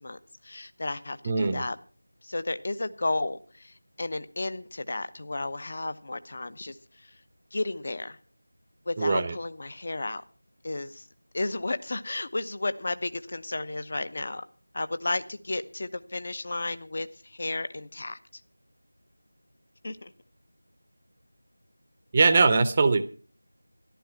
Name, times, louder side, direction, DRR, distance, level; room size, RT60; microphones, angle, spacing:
voice 1, 0.0-1.8 2.2-7.2 7.5-8.2 8.9-10.2 10.6-11.1 11.3-14.4 14.7-18.4 19.8-20.1, left 2 dB, 40° left, 13 dB, 0.9 m, -33 dB
voice 2, 1.2-1.6 9.0-9.3 22.1-23.0, right 4 dB, 20° right, 12 dB, 0.7 m, -21 dB
14.0 x 11.5 x 5.8 m, 0.39 s
figure-of-eight pair, 170°, 0 cm